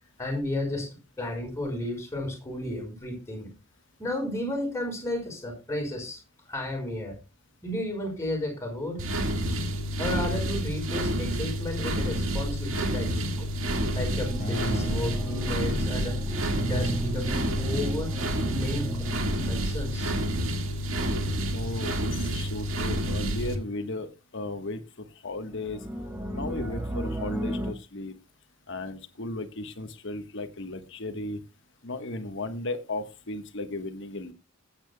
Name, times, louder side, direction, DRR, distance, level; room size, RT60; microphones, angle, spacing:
voice 1, 0.2-0.9 1.2-3.5 4.0-6.2 6.5-7.2 7.6-9.0 10.0-13.5 13.9-16.2 16.6-18.1 18.5-19.1 19.4-20.1, left 1 dB, 15° left, 2 dB, 4.9 m, -33 dB
sound 1, 9.0-23.5, right 1 dB, 80° right, 1.8 m, -29 dB
sound 2, 13.3-21.4 25.5-27.7, right 1 dB, 10° right, 1.5 m, -34 dB
Acoustic guitar, 14.4-16.8, left 1 dB, 45° left, 3.0 m, -43 dB
voice 2, 21.5-24.8 25.2-25.8 26.3-28.1 28.7-31.4 31.8-34.3, left 2 dB, 65° left, 9 dB, 1.3 m, -35 dB
20.5 x 8.9 x 2.2 m, 0.28 s
head